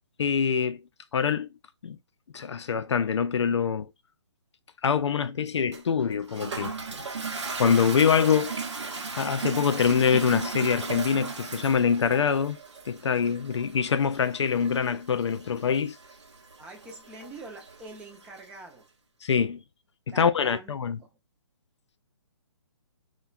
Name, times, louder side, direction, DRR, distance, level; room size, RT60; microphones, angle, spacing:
voice 1, 0.2-0.8 1.1-1.5 1.8-2.0 2.3-3.9 4.8-6.7 7.6-8.6 9.2-12.6 12.9-15.9 19.2-19.6 20.1-21.0, left 7 dB, 80° left, 0.4 m, -24 dB
Toilet flush, 5.7-18.5, right 4 dB, 90° right, 0.7 m, -37 dB
voice 2, 16.6-18.9 20.1-20.7 21.0-21.1, right 2 dB, 10° right, 0.4 m, -44 dB
3.5 x 2.2 x 2.3 m
hypercardioid pair, 150°, 14 cm